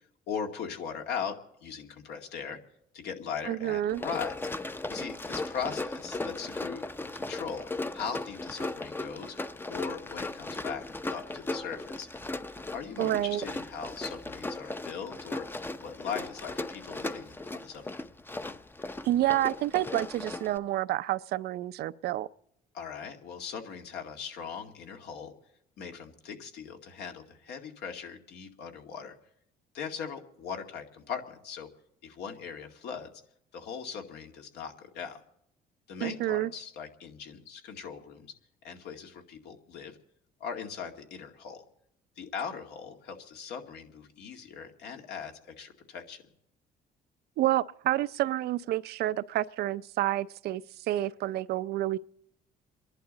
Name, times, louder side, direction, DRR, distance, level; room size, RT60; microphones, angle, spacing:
voice 1, 0.3-2.6 2.9-4.3 4.9-12.1 12.7-15.5 15.8-18.1 22.7-25.3 25.8-29.1 29.7-31.7 32.0-33.1 33.5-35.2 35.9-38.3 38.6-40.0 40.4-41.6 42.2-46.2, left 7 dB, 75° left, 2.2 m, -39 dB
voice 2, 3.5-4.0 13.0-13.4 19.0-22.3 36.0-36.5 47.4-52.0, right 14 dB, 70° right, 0.6 m, -29 dB
Run, 3.9-20.6, left 2 dB, 10° left, 0.6 m, -37 dB
28.5 x 11.5 x 4.0 m
cardioid pair, 110°, 17 cm